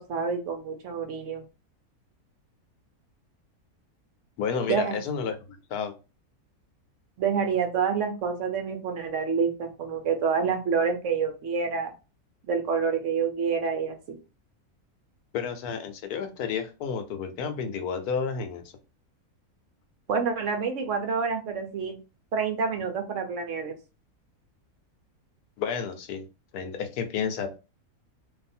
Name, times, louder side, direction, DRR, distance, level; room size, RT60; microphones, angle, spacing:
voice 1, 0.0-1.4 4.7-5.0 7.2-11.9 12.5-14.2 20.1-22.0 22.3-23.7, right 6 dB, 65° right, 5 dB, 0.9 m, -27 dB
voice 2, 4.4-5.4 5.7-5.9 15.3-18.6 25.6-26.3 26.5-27.6, left 6 dB, 85° left, 7 dB, 1.1 m, -31 dB
2.7 x 2.5 x 4.1 m, 0.31 s
omnidirectional pair, 1.6 m